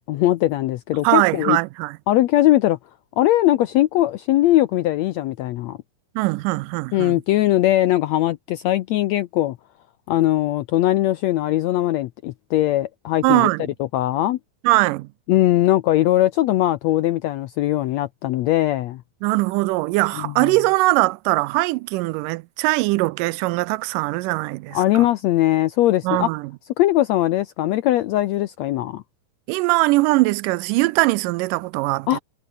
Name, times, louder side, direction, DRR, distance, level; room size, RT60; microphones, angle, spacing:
voice 1, 0.0-1.6 2.1-2.8 3.2-5.8 6.9-9.6 10.1-13.5 13.9-14.4 15.3-19.0 20.2-20.5 24.7-26.3 26.8-29.0 32.1-32.2, left 14 dB, 80° left, 1.6 m, -20 dB
voice 2, 1.0-2.0 6.2-7.2 13.2-13.7 14.6-15.1 19.2-25.1 26.0-26.5 29.5-32.2, right 21 dB, 80° right, 2.1 m, -21 dB
omnidirectional pair, 3.9 m